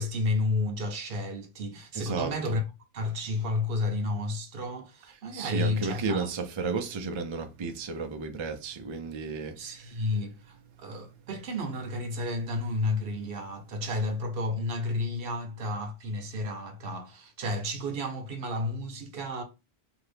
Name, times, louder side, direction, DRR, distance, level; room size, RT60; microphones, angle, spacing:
voice 1, 0.0-2.6 2.9-6.3 9.6-19.4, left 2 dB, 65° right, 0.9 m, -31 dB
voice 2, 1.9-2.5 5.3-10.1, right 4 dB, 50° right, 0.3 m, -33 dB
2.8 x 2.6 x 3.3 m
omnidirectional pair, 1.1 m